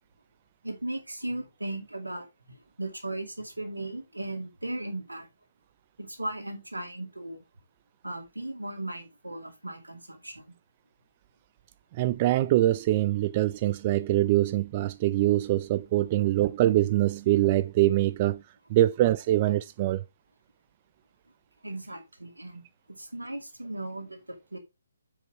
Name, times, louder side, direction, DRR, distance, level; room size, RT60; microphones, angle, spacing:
voice 1, 0.6-5.3 6.0-7.4 8.0-10.5 21.6-22.6 22.9-24.6, right 1 dB, 85° right, 2.4 m, -37 dB
voice 2, 11.9-18.4 18.7-20.0, right 15 dB, 30° right, 0.3 m, -24 dB
7.2 x 5.3 x 4.7 m
figure-of-eight pair, 140°, 0 cm